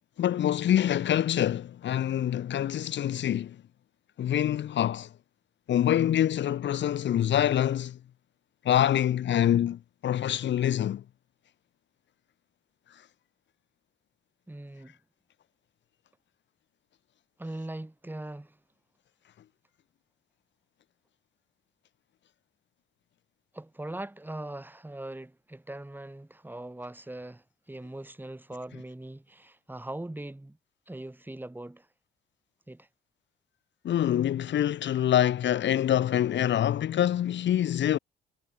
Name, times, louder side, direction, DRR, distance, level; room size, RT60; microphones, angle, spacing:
voice 1, 0.2-3.6 4.2-5.1 5.7-8.0 8.6-11.0 33.8-38.0, left 11 dB, 65° left, 1.9 m, -25 dB
voice 2, 14.5-15.0 17.4-18.6 23.5-30.6 30.9-31.9 32.7-32.9, right 1 dB, 10° right, 5.7 m, -41 dB
cardioid pair, 90°, 20 cm